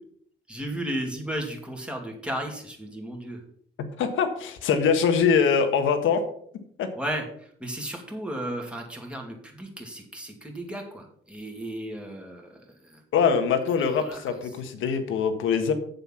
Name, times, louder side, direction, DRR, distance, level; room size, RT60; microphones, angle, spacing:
voice 1, 0.5-3.4 6.9-12.6 12.8-13.0 13.9-14.2, right 1 dB, 5° right, 1 dB, 2.7 m, -34 dB
voice 2, 4.0-6.2 6.8-6.9 13.1-15.7, left 6 dB, 80° left, 7 dB, 1.5 m, -23 dB
7.9 x 7.0 x 5.8 m, 0.64 s
cardioid pair, 90°, 20 cm